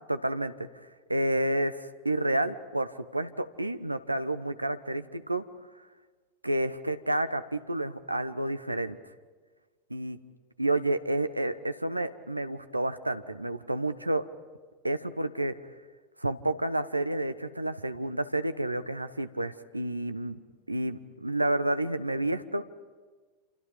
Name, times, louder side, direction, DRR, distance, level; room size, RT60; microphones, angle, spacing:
voice 1, 0.1-0.7 1.1-5.4 6.4-9.0 9.9-10.2 10.6-14.2 14.8-15.5 16.2-20.4 20.7-22.6, right 1 dB, 85° right, 11 dB, 1.1 m, -30 dB
29.0 x 28.0 x 5.4 m, 1.4 s
figure-of-eight pair, 90°, 0 cm